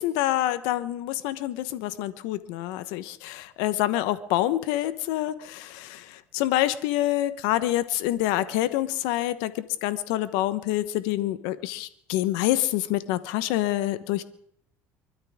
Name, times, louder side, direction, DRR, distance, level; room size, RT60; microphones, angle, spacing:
voice 1, 0.0-6.0 6.3-9.5 9.8-14.2, left 14 dB, 80° left, 13 dB, 1.0 m, -26 dB
24.5 x 13.0 x 3.6 m, 0.66 s
supercardioid pair, 85°, 7 cm